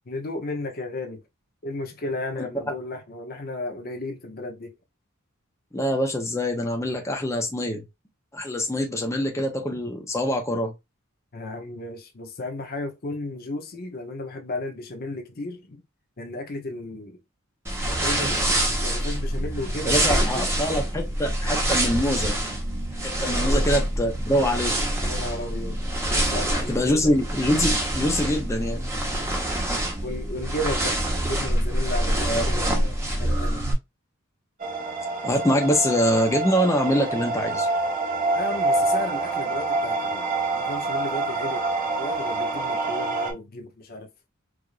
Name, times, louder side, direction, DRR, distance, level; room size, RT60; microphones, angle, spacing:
voice 1, 0.1-1.2 1.6-4.7 11.3-15.8 16.2-17.2 17.8-18.4 18.8-20.5 23.2-23.7 25.0-25.8 26.1-27.2 30.0-31.0 31.2-33.6 38.3-40.3 40.5-41.7 42.0-44.3, left 2 dB, 45° left, 0.8 m, -34 dB
voice 2, 5.7-7.8 8.3-10.7 19.8-22.3 23.0-24.7 26.7-28.9 32.3-32.5 35.2-37.7, equal, 15° left, 0.8 m, -24 dB
sound 1, 17.7-33.7, right 1 dB, 10° right, 1.0 m, -26 dB
sound 2, 34.6-43.3, right 3 dB, 40° right, 1.2 m, -26 dB
4.7 x 2.6 x 2.5 m
head